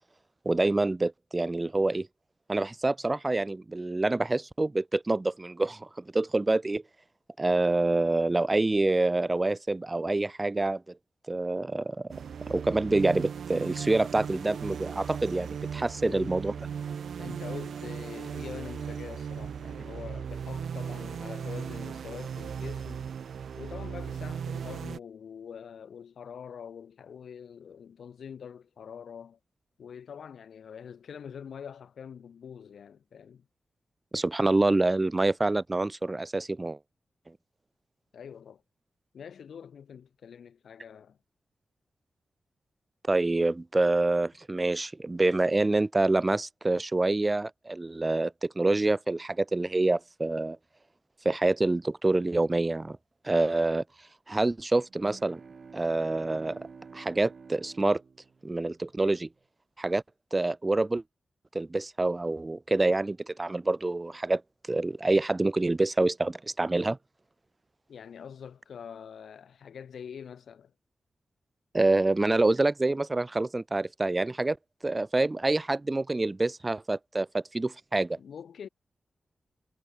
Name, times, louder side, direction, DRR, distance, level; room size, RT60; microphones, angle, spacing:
voice 1, 0.5-2.1 2.5-6.8 7.4-10.8 11.3-12.1 12.5-16.5 34.1-36.8 43.1-50.6 51.2-53.0 53.2-53.8 54.3-55.4 55.7-56.6 56.9-58.0 58.4-59.3 59.8-60.0 60.3-61.0 61.5-64.4 64.7-67.0 71.7-74.6 74.8-78.2, right 2 dB, 20° right, 0.5 m, -26 dB
sound 1, 12.1-25.0, right 7 dB, 85° right, 0.4 m, -37 dB
voice 2, 16.0-23.1 23.6-29.4 29.8-33.5 38.1-38.6 39.1-41.2 67.9-70.7 78.2-78.7, left 7 dB, 85° left, 1.3 m, -44 dB
sound 2, 54.9-58.9, right 5 dB, 45° right, 4.6 m, -49 dB
wide cardioid pair, 155°, 0 cm